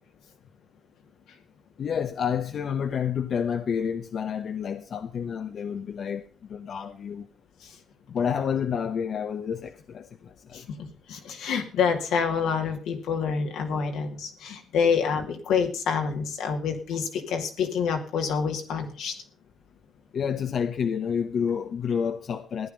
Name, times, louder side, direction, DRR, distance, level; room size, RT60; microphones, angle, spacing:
voice 1, 1.8-7.3 8.1-10.7 20.1-22.7, left 7 dB, 60° left, 0.9 m, -29 dB
voice 2, 10.5-19.2, left 6 dB, 80° left, 2.3 m, -27 dB
14.5 x 10.0 x 5.3 m
cardioid pair, 75°, 0 cm